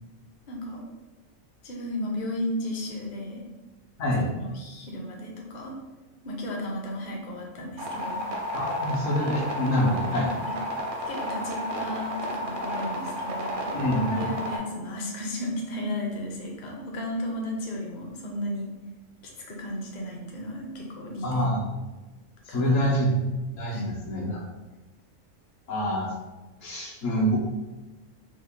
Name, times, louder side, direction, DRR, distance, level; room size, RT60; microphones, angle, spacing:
voice 1, 0.5-0.8 1.6-3.4 4.0-5.7 6.2-8.2 10.1-10.6 11.1-18.8 19.5-21.5 22.5-23.1 23.7-24.0, left 1 dB, 45° left, -1 dB, 0.6 m, -34 dB
sound 1, 7.8-14.6, equal, 60° right, 0.6 m, -32 dB
voice 2, 8.5-10.3 13.7-14.3 21.2-21.7 22.5-23.1 23.5-24.4 25.7-26.1 26.6-27.4, equal, 75° left, -4 dB, 1.2 m, -26 dB
3.1 x 2.2 x 3.5 m, 1.2 s
omnidirectional pair, 1.4 m